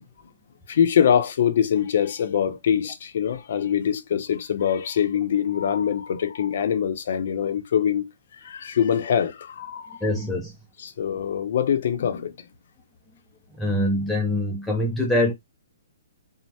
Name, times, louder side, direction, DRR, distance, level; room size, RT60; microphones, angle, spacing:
voice 1, 0.7-10.1 10.8-12.5, left 8 dB, 55° left, 0.6 m, -24 dB
voice 2, 10.0-10.6 13.5-15.3, left 1 dB, 5° left, 0.4 m, -24 dB
2.7 x 2.0 x 3.1 m
hypercardioid pair, 165°, 0 cm